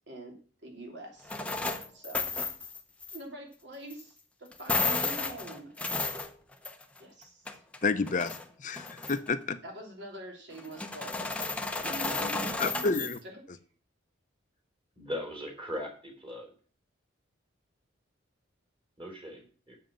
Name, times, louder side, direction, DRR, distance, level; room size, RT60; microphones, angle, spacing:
voice 1, 0.6-1.3 1.9-2.3 3.1-5.7 7.0-7.5 9.6-11.1 11.8-13.1, right 1 dB, 60° right, 1 dB, 3.0 m, -44 dB
sound 1, 1.3-3.2 3.9-4.0 4.5-7.0 7.2-8.4 8.8-9.3 10.6-13.2, left 3 dB, 5° left, 0.8 m, -33 dB
voice 2, 7.8-9.6 12.6-13.2, left 4 dB, 40° left, 12 dB, 0.6 m, -30 dB
voice 3, 15.0-16.5 19.0-19.4 19.7-19.8, left 1 dB, 25° right, 0 dB, 3.7 m, -38 dB
7.5 x 6.8 x 7.5 m, 0.42 s
head